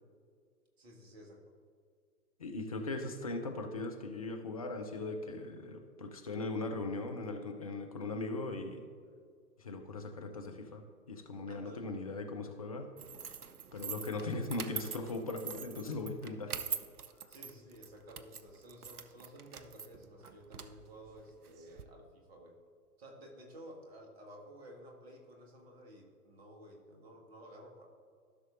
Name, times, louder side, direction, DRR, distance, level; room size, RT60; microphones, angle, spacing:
voice 1, 0.8-1.5 11.5-11.9 17.3-22.6 23.0-27.9, equal, 40° right, 1 dB, 1.7 m, -53 dB
voice 2, 2.4-8.9 9.6-12.9 13.7-16.5, left 2 dB, 25° left, 4 dB, 0.5 m, -39 dB
sound 1, 13.0-21.8, right 7 dB, 70° right, 0.7 m, -44 dB
15.0 x 6.2 x 2.6 m, 2.1 s
figure-of-eight pair, 120°, 47 cm